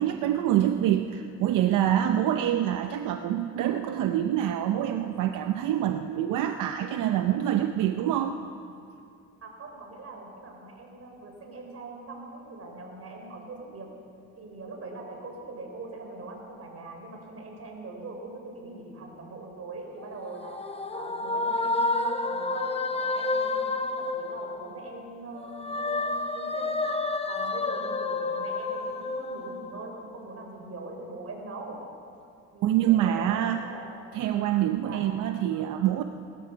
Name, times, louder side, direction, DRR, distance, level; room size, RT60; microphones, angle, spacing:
voice 1, 0.0-8.4 32.6-33.6 34.1-36.0, right 11 dB, 90° right, 7 dB, 0.7 m, -26 dB
voice 2, 9.4-13.9 14.4-20.6 20.9-26.8 27.2-31.8 32.5-33.9 34.9-35.1, right 2 dB, 55° right, 1 dB, 4.1 m, -42 dB
sound 1, 20.0-25.0 25.4-30.1, left 3 dB, 20° left, 0.9 m, -30 dB
19.0 x 13.0 x 5.7 m, 2.5 s
cardioid pair, 90°, 30 cm